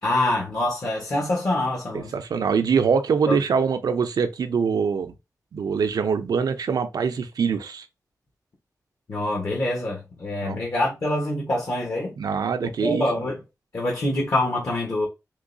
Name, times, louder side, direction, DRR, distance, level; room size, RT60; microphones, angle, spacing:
voice 1, 0.0-2.1 3.3-3.4 9.1-12.1 12.6-13.4 13.7-15.1, left 1 dB, 55° left, 1.2 m, -25 dB
voice 2, 1.9-5.1 5.5-7.9 10.4-10.6 12.2-13.0, right 6 dB, 85° right, 0.5 m, -23 dB
3.7 x 3.1 x 2.6 m
wide cardioid pair, 85°, 7 cm